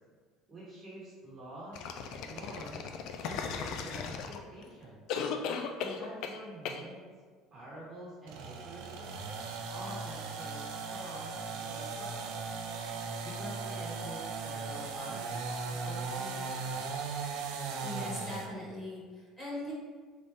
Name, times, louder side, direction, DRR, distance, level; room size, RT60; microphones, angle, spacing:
voice 1, 0.5-1.8 2.2-2.9 3.2-5.0 5.8-7.0 7.5-9.2 9.7-12.4 13.2-16.9, right 1 dB, 25° right, -6 dB, 1.2 m, -47 dB
sound 1, 1.7-4.6 5.1-6.4 6.6-6.8, left 6 dB, 60° left, 0.4 m, -36 dB
sound 2, 8.3-18.5, right 4 dB, 75° right, 0.5 m, -38 dB
voice 2, 17.8-19.7, left 1 dB, 15° left, -8 dB, 1.5 m, -40 dB
4.1 x 3.4 x 3.3 m, 1.5 s
cardioid pair, 155°, 0 cm